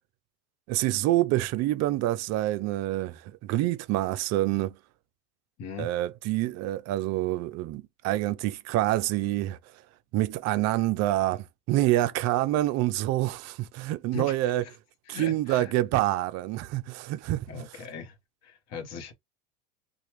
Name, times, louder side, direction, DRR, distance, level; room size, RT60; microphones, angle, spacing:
voice 1, 0.7-4.8 5.8-9.6 10.1-14.6 15.1-17.5, right 15 dB, 40° right, 0.4 m, -27 dB
voice 2, 5.6-5.9 14.1-14.7 15.1-15.7 17.5-18.2 18.4-19.1, left 4 dB, 40° left, 1.0 m, -39 dB
2.9 x 2.3 x 2.9 m
supercardioid pair, 115°, 42 cm